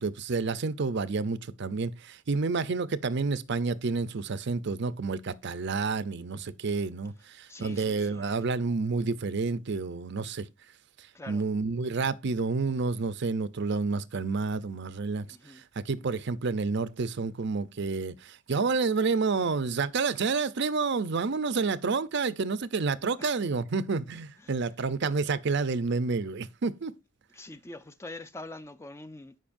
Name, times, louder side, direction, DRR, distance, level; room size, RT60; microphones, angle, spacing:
voice 1, 0.0-10.5 11.3-15.3 15.5-26.9, right 4 dB, 60° right, 0.6 m, -29 dB
voice 2, 7.5-8.5 11.1-11.4 15.3-15.6 23.2-23.3 24.4-24.5 27.3-29.4, left 2 dB, 15° left, 0.5 m, -44 dB
15.5 x 5.4 x 2.6 m
head